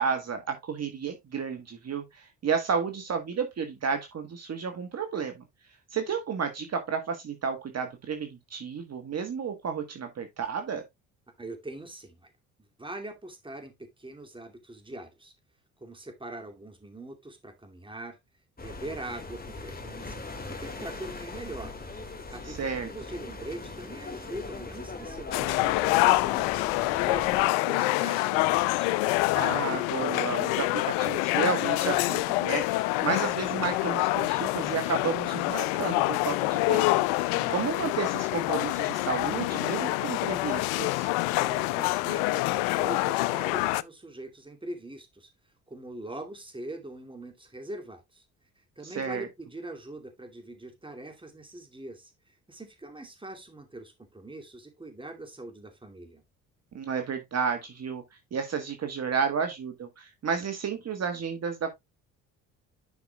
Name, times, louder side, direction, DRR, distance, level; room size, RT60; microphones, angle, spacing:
voice 1, 0.0-5.4 5.9-10.8 22.4-22.9 29.3-36.9 37.2-41.1 48.8-49.3 56.7-58.0 58.3-61.7, right 6 dB, 45° right, 1.5 m, -32 dB
voice 2, 11.4-12.3 12.8-15.3 15.8-18.2 18.6-20.2 20.5-21.7 22.3-26.6 27.0-28.9 37.3-37.6 41.4-45.3 45.7-48.3 48.6-56.2, right 2 dB, 15° right, 2.6 m, -42 dB
sound 1, 18.6-27.5, left 3 dB, 25° left, 2.1 m, -40 dB
sound 2, 25.3-43.8, left 19 dB, 85° left, 0.5 m, -26 dB
11.0 x 5.8 x 2.3 m
supercardioid pair, 65°, 36 cm